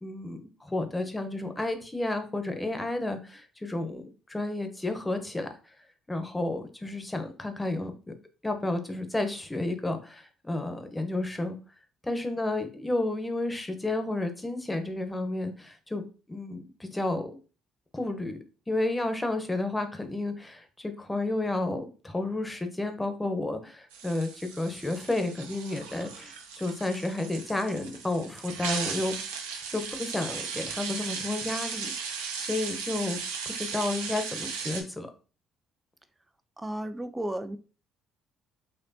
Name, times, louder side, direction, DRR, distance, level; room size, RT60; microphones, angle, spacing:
voice 1, 0.0-4.0 4.3-5.5 6.1-7.9 8.4-11.6 12.0-17.3 17.9-18.4 18.7-29.1 29.7-32.1 32.4-33.2 33.5-35.1, left 2 dB, 15° left, 0.8 m, -31 dB
sound 1, 23.9-34.8, right 6 dB, 85° right, 0.6 m, -37 dB
voice 2, 36.6-37.6, right 1 dB, 15° right, 0.5 m, -33 dB
4.3 x 2.5 x 2.7 m
hypercardioid pair, 60°, 0 cm